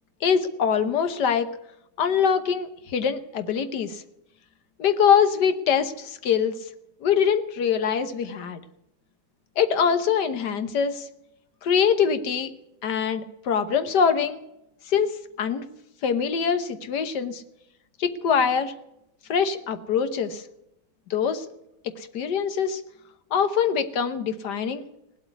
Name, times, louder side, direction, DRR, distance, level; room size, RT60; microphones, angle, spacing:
voice 1, 0.2-1.5 2.0-4.0 4.8-6.5 7.0-8.6 9.6-11.1 11.6-12.5 12.8-14.4 14.9-15.6 16.0-17.4 18.0-18.7 19.3-20.4 21.1-21.4 22.0-22.8 23.3-24.9, left 7 dB, 90° left, 10 dB, 1.7 m, -23 dB
18.5 x 8.1 x 9.3 m, 0.84 s
omnidirectional pair, 1.8 m